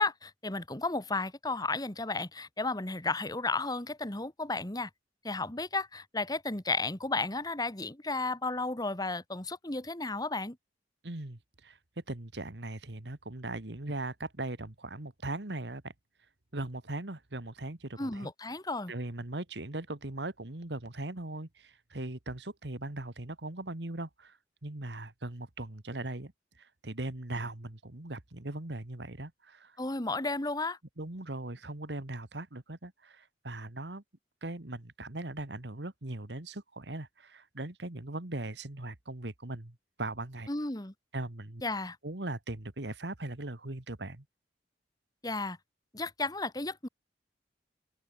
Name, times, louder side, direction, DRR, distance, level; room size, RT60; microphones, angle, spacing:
voice 1, 0.0-4.9 5.2-10.6 18.0-18.9 29.8-30.8 40.5-40.9 41.6-42.0 45.2-45.6 45.9-46.9, left 3 dB, 20° left, 1.8 m, -33 dB
voice 2, 11.0-11.8 12.1-15.9 16.5-18.3 18.9-24.4 24.6-26.3 26.6-29.8 31.0-34.0 34.4-40.5 41.1-41.6 42.0-44.2, right 2 dB, 75° right, 2.1 m, -39 dB
open air
head